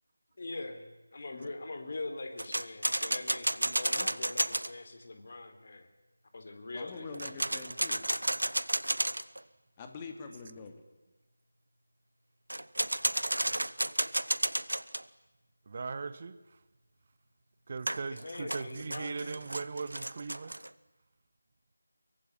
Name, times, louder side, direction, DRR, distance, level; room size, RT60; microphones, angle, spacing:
voice 1, 0.4-5.9 6.3-7.4 18.2-19.5, left 2 dB, 40° left, 3.8 m, -42 dB
sound 1, 2.4-4.7 7.1-9.4 12.5-15.0 17.9-20.7, right 1 dB, 70° right, 1.2 m, -32 dB
voice 2, 6.7-8.1 9.8-10.8, left 5 dB, 15° left, 2.8 m, -45 dB
voice 3, 15.7-16.4 17.7-20.6, right 4 dB, 35° right, 1.2 m, -39 dB
24.5 x 23.5 x 9.9 m
figure-of-eight pair, 160°, 0 cm